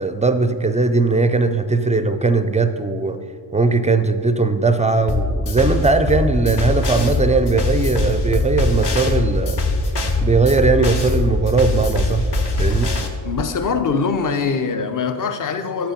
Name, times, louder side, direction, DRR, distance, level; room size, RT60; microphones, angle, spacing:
voice 1, 0.0-3.2 3.5-9.6 10.2-12.3 12.6-12.9, right 3 dB, 15° right, 0.3 m, -19 dB
sound 1, 5.1-13.1, left 2 dB, 55° left, 1.0 m, -21 dB
voice 2, 13.2-15.9, left 5 dB, 40° left, 0.6 m, -22 dB
8.0 x 4.5 x 5.1 m
cardioid pair, 65°, 47 cm